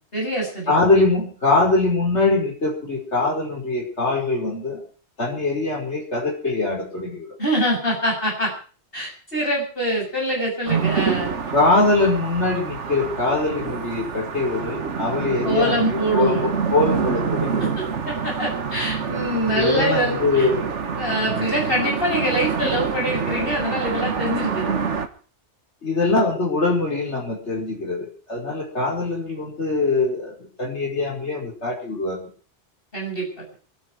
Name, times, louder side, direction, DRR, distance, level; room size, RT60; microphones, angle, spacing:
voice 1, 0.1-0.8 7.4-8.5 8.9-11.3 15.4-16.5 17.6-20.5 21.0-24.7 32.9-33.5, equal, 50° left, -2 dB, 7.5 m, -24 dB
voice 2, 0.7-4.8 5.2-7.3 11.5-17.8 19.6-20.7 25.8-32.2, left 3 dB, 70° left, -1 dB, 5.5 m, -22 dB
sound 1, 10.7-25.1, right 6 dB, 80° right, 1.6 m, -27 dB
26.0 x 10.0 x 4.8 m, 0.41 s
omnidirectional pair, 1.2 m